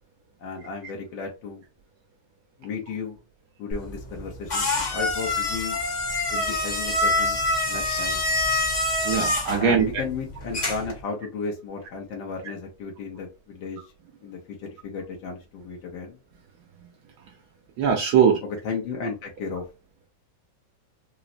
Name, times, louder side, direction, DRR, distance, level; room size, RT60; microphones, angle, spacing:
voice 1, 0.4-1.6 2.6-3.2 3.6-5.8 6.3-7.4 7.7-8.2 9.6-13.8 14.2-16.2 18.4-19.6, left 5 dB, 85° left, 1.5 m, -34 dB
sound 1, 3.7-11.0, left 2 dB, 40° left, 0.6 m, -26 dB
voice 2, 9.0-9.9 17.8-18.4, right 7 dB, 70° right, 1.1 m, -20 dB
3.9 x 2.0 x 2.5 m
omnidirectional pair, 2.0 m